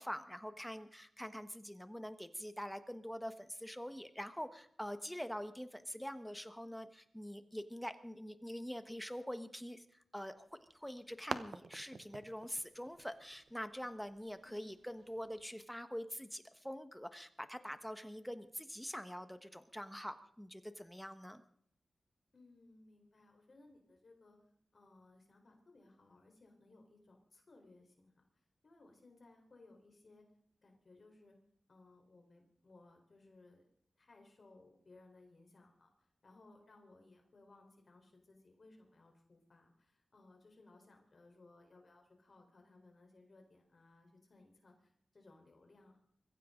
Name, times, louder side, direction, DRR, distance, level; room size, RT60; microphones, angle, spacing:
voice 1, 0.0-9.8 10.1-10.4 10.7-21.4, equal, 5° left, 10 dB, 1.3 m, -45 dB
sound 1, 10.4-15.5, right 5 dB, 80° right, 0.9 m, -49 dB
voice 2, 14.4-14.8 22.3-24.4 24.7-28.2 28.6-30.3 30.6-31.4 31.7-33.7 34.0-46.1, left 2 dB, 55° left, 2 dB, 4.1 m, -63 dB
23.5 x 15.5 x 3.9 m, 0.66 s
wide cardioid pair, 70°, 0 cm